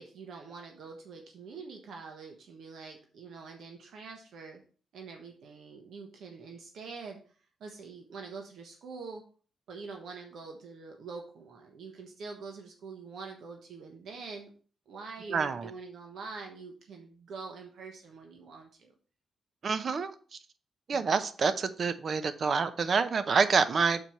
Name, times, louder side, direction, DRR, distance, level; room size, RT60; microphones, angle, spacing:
voice 1, 0.0-4.6 4.9-7.2 7.6-9.2 9.7-14.5 14.9-18.9 20.9-21.2, right 4 dB, 75° right, 1.2 m, -45 dB
voice 2, 15.3-15.7 19.6-20.1 20.9-24.0, right 5 dB, 50° right, 0.8 m, -27 dB
6.8 x 4.5 x 5.5 m
cardioid pair, 85°, 0 cm